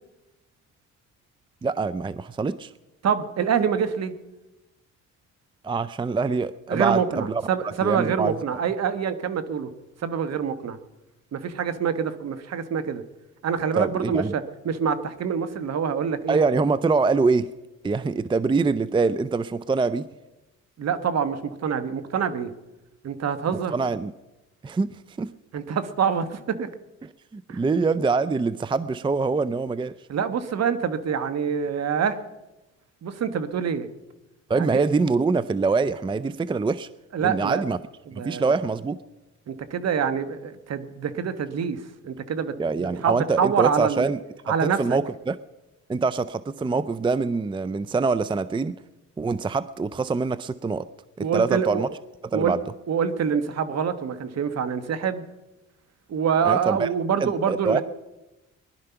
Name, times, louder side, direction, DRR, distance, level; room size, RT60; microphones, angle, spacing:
voice 1, 1.6-2.7 5.6-7.4 7.8-8.4 13.8-14.3 16.3-17.5 17.8-20.1 23.7-24.1 24.6-25.3 27.3-29.9 34.5-36.9 37.2-37.8 38.2-39.0 42.6-44.2 44.6-45.4 45.9-48.8 49.2-50.9 51.2-51.9 52.3-52.6 56.4-56.9 57.2-57.8, right 4 dB, 15° right, 16 dB, 0.5 m, -24 dB
voice 2, 3.0-4.1 6.7-9.7 10.0-10.8 11.3-13.0 13.4-16.4 20.8-22.5 23.0-23.7 25.5-26.7 27.5-27.6 30.1-32.2 33.0-33.9 34.5-34.8 37.1-37.6 38.1-38.5 39.5-44.1 44.5-45.0 51.2-51.8 52.3-52.6 52.9-55.2 56.1-57.8, right 7 dB, 60° right, 10 dB, 1.4 m, -26 dB
20.0 x 11.5 x 5.8 m, 1.0 s
cardioid pair, 90°, 30 cm